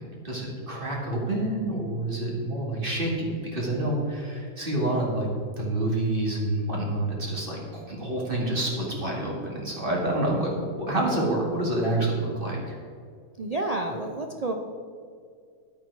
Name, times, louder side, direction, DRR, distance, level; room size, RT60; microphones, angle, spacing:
voice 1, 0.0-5.3 5.6-10.5 10.8-12.8, right 1 dB, 35° right, -3 dB, 2.3 m, -28 dB
voice 2, 13.4-14.5, right 2 dB, 85° right, 2 dB, 0.3 m, -29 dB
10.5 x 8.6 x 4.7 m, 2.3 s
omnidirectional pair, 1.7 m